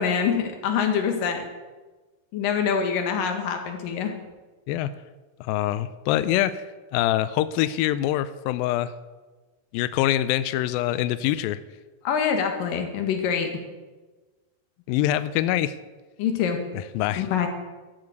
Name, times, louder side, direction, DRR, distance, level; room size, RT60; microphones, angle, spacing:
voice 1, 0.0-1.4 2.3-4.1 12.0-13.5 16.2-16.6 17.2-17.5, left 7 dB, 65° left, 4 dB, 3.0 m, -25 dB
voice 2, 5.4-6.6 6.9-8.9 9.7-11.6 14.9-15.8 16.7-17.2, left 13 dB, 85° left, 14 dB, 2.1 m, -24 dB
13.0 x 9.0 x 8.1 m, 1.3 s
omnidirectional pair, 4.7 m